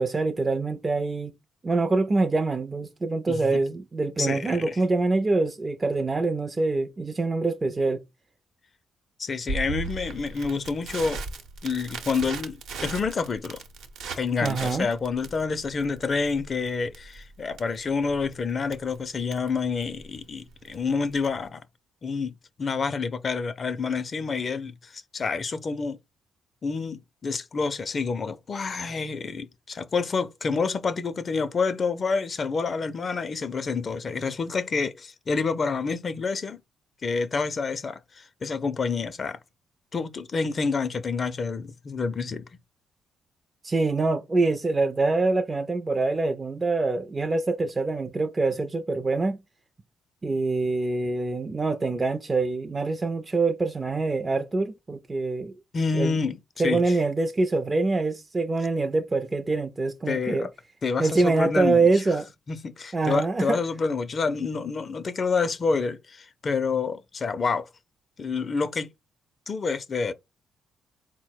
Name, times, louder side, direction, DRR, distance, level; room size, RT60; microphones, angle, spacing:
voice 1, 0.0-1.3 1.6-8.0 14.4-14.9 43.6-49.4 50.2-55.5 55.9-56.2 56.6-60.5 61.0-62.3 62.9-63.6, right 3 dB, 25° right, 0.4 m, -25 dB
voice 2, 3.3-3.6 4.2-4.8 9.2-11.2 11.6-12.6 12.8-13.6 14.2-21.6 22.0-22.3 22.6-26.0 26.6-36.6 37.0-39.4 39.9-42.5 55.7-57.0 60.1-60.5 60.8-61.9 62.5-67.7 68.2-68.9 69.5-70.1, left 4 dB, 40° left, 0.4 m, -28 dB
Crackle, 9.5-21.5, right 4 dB, 85° right, 0.8 m, -38 dB
4.2 x 2.1 x 4.4 m
cardioid pair, 90°, 0 cm